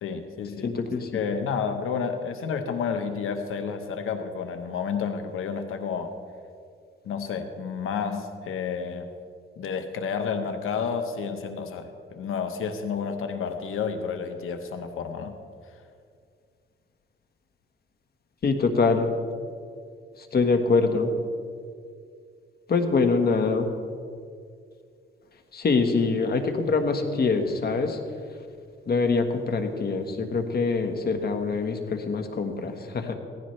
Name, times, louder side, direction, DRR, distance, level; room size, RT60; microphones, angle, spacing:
voice 1, 0.0-0.7 1.1-6.1 7.0-9.1 9.6-15.3, left 6 dB, 85° left, 7 dB, 1.1 m, -30 dB
voice 2, 0.6-1.2 18.4-19.1 20.3-21.1 22.7-23.7 25.5-28.0 28.9-33.1, left 4 dB, 50° left, 5 dB, 1.4 m, -24 dB
16.5 x 15.0 x 3.3 m, 2.2 s
cardioid pair, 115°, 21 cm